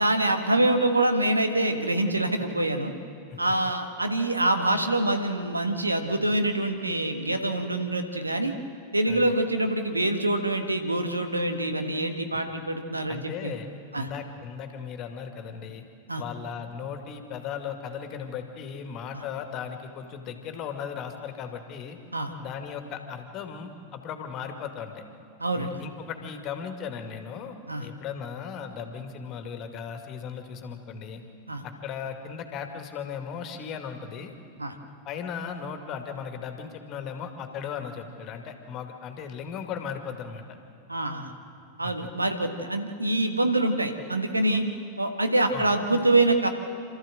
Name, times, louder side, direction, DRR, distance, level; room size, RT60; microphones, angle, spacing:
voice 1, 0.0-2.9 3.4-8.5 8.9-13.5 13.9-14.1 16.1-16.2 19.1-19.2 22.1-22.3 25.4-25.8 27.7-27.9 31.5-31.6 34.6-34.7 40.9-41.3 41.8-44.6 45.0-46.5, right 2 dB, 80° right, 6 dB, 1.5 m, -25 dB
voice 2, 13.1-13.7 13.9-15.8 16.2-22.0 22.4-25.0 25.5-31.2 31.6-34.3 35.0-40.4 41.8-41.9 45.5-45.7, left 7 dB, 35° left, 6 dB, 2.1 m, -37 dB
27.5 x 13.5 x 7.8 m, 2.5 s
figure-of-eight pair, 90°, 0 cm